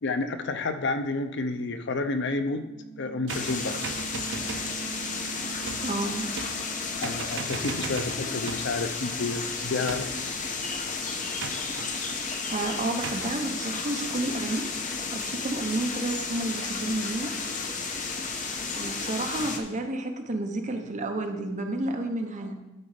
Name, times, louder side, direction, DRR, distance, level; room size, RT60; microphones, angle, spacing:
voice 1, 0.0-2.7 3.0-3.8 7.0-10.1, left 3 dB, 65° left, 9 dB, 0.7 m, -30 dB
sound 1, 2.2-8.5, right 6 dB, 25° left, 2.6 m, -44 dB
sound 2, 3.3-19.6, left 4 dB, 40° left, 1.0 m, -33 dB
sound 3, 3.3-4.8 5.6-6.0 6.4-6.8 7.0-8.8 9.9-10.3 11.4-11.9 13.0-13.4, right 5 dB, 65° right, 0.5 m, -38 dB
voice 2, 5.8-6.3 12.5-14.7 15.1-17.5 18.5-22.6, right 2 dB, 40° right, 5 dB, 1.0 m, -31 dB
12.5 x 4.2 x 5.0 m, 1.0 s
head